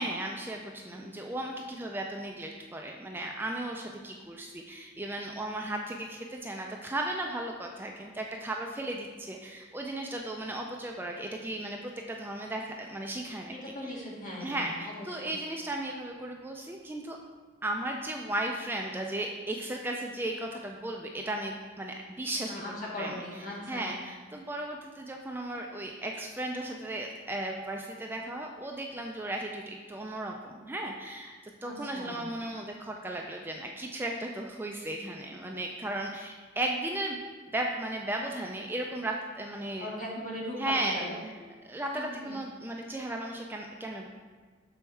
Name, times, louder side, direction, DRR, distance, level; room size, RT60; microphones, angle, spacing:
voice 1, 0.0-13.6 13.8-13.9 14.4-17.2 17.6-22.6 23.0-23.2 23.7-31.3 31.6-37.2 37.5-39.9 40.6-41.0 41.6-44.1, right 1 dB, 10° right, 1 dB, 0.4 m, -35 dB
voice 2, 13.6-15.3 22.4-23.9 31.6-32.2 39.8-41.2 41.9-42.4, left 1 dB, 45° left, -4 dB, 1.8 m, -39 dB
6.9 x 4.4 x 4.6 m, 1.5 s
head